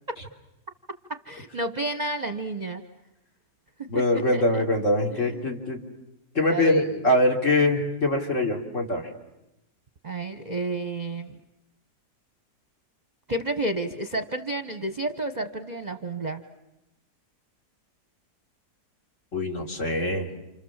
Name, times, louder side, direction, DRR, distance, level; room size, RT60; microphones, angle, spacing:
voice 1, 1.1-2.8 3.8-3.9 4.3-4.4 5.1-5.5 6.5-7.0 10.0-11.4 13.3-16.4, right 2 dB, 30° right, 8 dB, 1.0 m, -31 dB
voice 2, 3.9-5.8 6.4-9.1 19.3-20.3, left 1 dB, 50° left, 2 dB, 3.6 m, -23 dB
29.0 x 28.0 x 7.3 m, 0.93 s
omnidirectional pair, 1.7 m